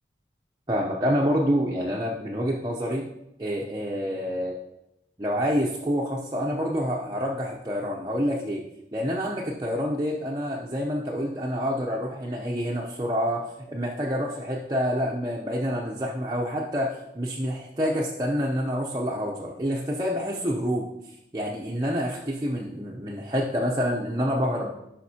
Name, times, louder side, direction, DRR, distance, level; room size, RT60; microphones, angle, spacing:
voice 1, 0.7-3.0 3.4-4.5 5.2-8.6 8.9-20.9 21.3-24.7, equal, 20° right, -2 dB, 0.7 m, -27 dB
10.5 x 5.7 x 2.8 m, 0.85 s
head